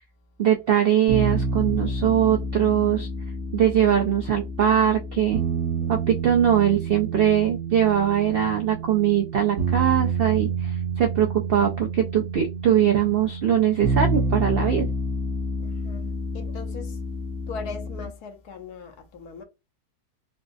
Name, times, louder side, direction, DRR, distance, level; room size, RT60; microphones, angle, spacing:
voice 1, 0.4-3.1 3.5-5.4 5.9-14.9, right 9 dB, 90° right, 0.5 m, -21 dB
sound 1, 1.1-18.1, right 3 dB, 60° right, 1.0 m, -29 dB
voice 2, 15.6-17.0 17.5-19.4, left 5 dB, 85° left, 1.3 m, -40 dB
4.0 x 2.3 x 2.5 m
omnidirectional pair, 1.6 m